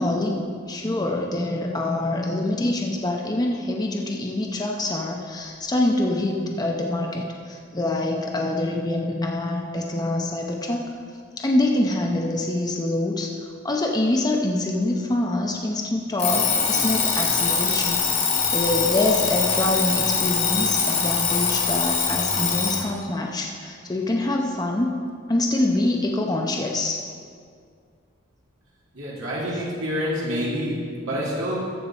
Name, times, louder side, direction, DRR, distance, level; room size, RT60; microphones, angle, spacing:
voice 1, 0.0-10.9 11.4-13.3 13.6-18.0 18.5-24.9 25.3-27.0, left 2 dB, 20° left, 0 dB, 0.7 m, -25 dB
Alarm, 16.2-22.9, left 5 dB, 35° left, 1.7 m, -23 dB
voice 2, 28.9-31.6, equal, 70° right, -6 dB, 2.2 m, -27 dB
14.0 x 6.8 x 4.2 m, 2.2 s
head